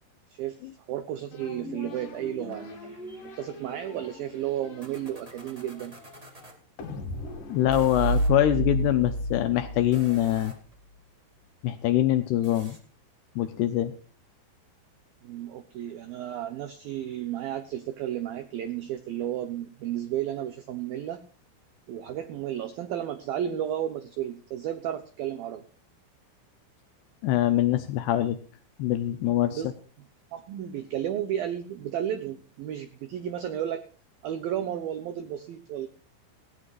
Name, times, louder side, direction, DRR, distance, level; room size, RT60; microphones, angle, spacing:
voice 1, 0.3-0.6 0.9-3.0 3.4-6.0 15.2-21.2 21.9-25.6 29.5-29.7 30.3-33.8 34.2-35.9, right 11 dB, 85° right, 10 dB, 2.0 m, -33 dB
sound 1, 1.3-8.8, left 2 dB, 50° left, 3.3 m, -43 dB
sound 2, 2.4-6.6 7.6-8.3 9.8-10.7 12.4-12.8, right 1 dB, 30° right, 0.6 m, -50 dB
voice 2, 7.5-10.5 11.6-12.8 13.4-13.9 27.2-28.4 28.8-29.6, left 13 dB, 75° left, 10 dB, 2.6 m, -24 dB
sound 3, 7.7-10.5, right 1 dB, 60° right, 6.1 m, -29 dB
18.0 x 16.5 x 2.5 m, 0.38 s
omnidirectional pair, 5.6 m